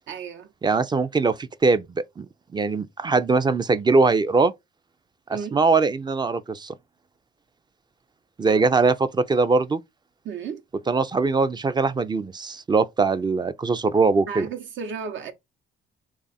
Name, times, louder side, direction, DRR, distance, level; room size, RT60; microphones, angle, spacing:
voice 1, 0.1-0.5 5.3-5.6 8.5-8.8 10.2-10.6 14.3-15.3, right 6 dB, 70° right, 0.8 m, -34 dB
voice 2, 0.6-2.3 2.5-4.5 5.3-6.7 8.4-9.8 10.9-14.5, right 4 dB, 20° right, 0.4 m, -21 dB
3.3 x 2.4 x 4.0 m
cardioid pair, 90°, 20 cm